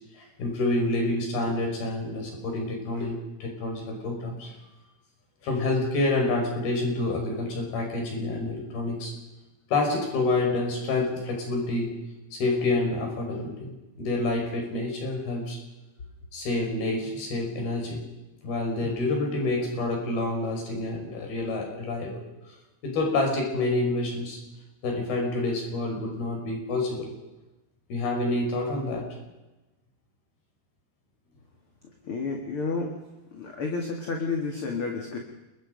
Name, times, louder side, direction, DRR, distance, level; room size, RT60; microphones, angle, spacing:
voice 1, 0.2-4.5 5.4-9.1 9.7-12.0 12.3-15.6 16.3-18.0 18.4-22.2 22.8-24.4 24.8-27.1 27.9-29.1, left 2 dB, 60° left, 1 dB, 7.3 m, -28 dB
voice 2, 31.8-33.0 33.3-35.2, left 4 dB, 40° left, 2 dB, 2.4 m, -31 dB
29.0 x 22.5 x 5.3 m, 1.0 s
omnidirectional pair, 4.9 m